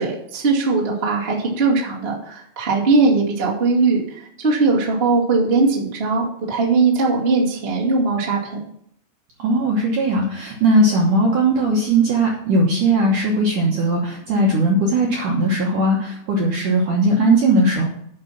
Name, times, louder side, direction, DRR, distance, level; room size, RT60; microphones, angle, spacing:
voice 1, 0.0-8.6, right 3 dB, 55° right, -4 dB, 0.6 m, -19 dB
voice 2, 9.4-17.9, right 1 dB, 70° right, -1 dB, 1.9 m, -18 dB
10.5 x 5.5 x 5.8 m, 0.69 s
omnidirectional pair, 5.4 m